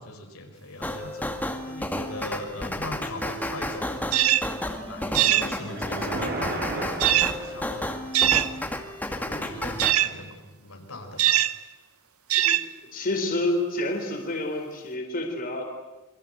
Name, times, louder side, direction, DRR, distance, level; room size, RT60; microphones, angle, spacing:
voice 1, 0.0-3.9 4.6-8.5 9.0-11.4, left 1 dB, 80° left, 3 dB, 5.0 m, -40 dB
sound 1, 0.8-9.9, left 1 dB, 10° left, 2.2 m, -32 dB
sound 2, 4.1-4.5 5.1-5.5 7.0-7.3 8.1-8.5 9.8-10.1 11.2-11.5 12.3-12.7, right 13 dB, 85° right, 1.0 m, -21 dB
sound 3, 5.7-8.0, right 2 dB, 45° right, 4.9 m, -34 dB
voice 2, 12.9-15.6, left 1 dB, 40° left, 3 dB, 4.2 m, -28 dB
28.5 x 23.5 x 8.1 m, 1.1 s
head